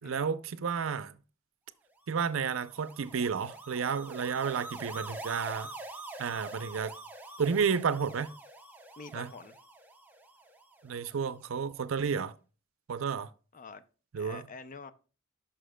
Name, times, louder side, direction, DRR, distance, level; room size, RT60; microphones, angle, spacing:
voice 1, 0.0-1.1 2.1-5.7 6.2-6.9 7.4-8.3 9.1-9.3 10.8-12.3 12.9-13.3 14.1-14.4, right 6 dB, 75° right, 0.5 m, -31 dB
sound 1, 2.1-11.4, right 2 dB, 10° right, 0.7 m, -46 dB
voice 2, 9.0-9.6 13.5-13.8 14.2-14.9, left 4 dB, 40° left, 0.5 m, -46 dB
11.0 x 5.8 x 2.2 m
head